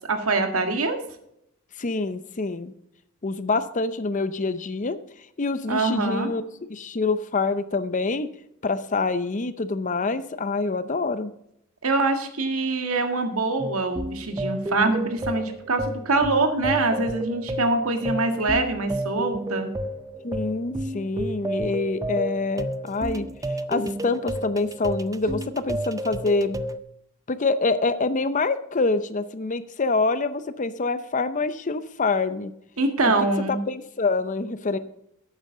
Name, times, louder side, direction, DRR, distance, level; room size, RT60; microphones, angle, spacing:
voice 1, 0.1-1.0 5.7-6.3 11.8-19.7 32.8-33.6, right 3 dB, 90° right, 6 dB, 1.7 m, -24 dB
voice 2, 1.8-2.7 3.2-5.0 5.4-6.4 6.7-8.3 8.6-11.3 20.2-23.3 23.7-26.6 27.3-32.5 33.0-33.1 33.5-34.8, left 3 dB, 35° left, 13 dB, 0.6 m, -26 dB
sound 1, 13.6-26.8, right 1 dB, 15° right, 0.4 m, -31 dB
11.5 x 9.0 x 3.8 m, 0.76 s
head